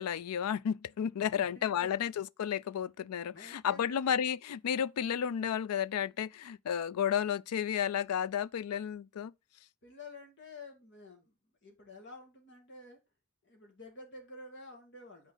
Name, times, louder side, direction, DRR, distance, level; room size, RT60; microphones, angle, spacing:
voice 1, 0.0-9.3, left 8 dB, 90° left, 0.4 m, -32 dB
voice 2, 1.1-1.9 3.2-4.1 9.8-11.3 11.6-13.0 13.4-15.3, left 3 dB, 55° left, 2.2 m, -50 dB
9.0 x 4.5 x 3.9 m
head